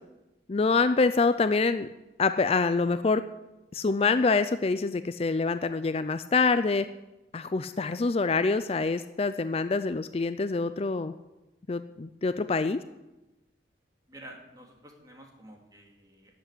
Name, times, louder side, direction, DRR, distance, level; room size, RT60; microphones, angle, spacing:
voice 1, 0.5-1.9 2.2-3.2 3.7-6.9 7.3-11.1 11.7-12.8, left 4 dB, 35° left, 11 dB, 0.4 m, -26 dB
voice 2, 14.1-16.4, right 1 dB, 20° right, 1 dB, 2.6 m, -50 dB
12.5 x 8.1 x 9.9 m, 1.0 s
head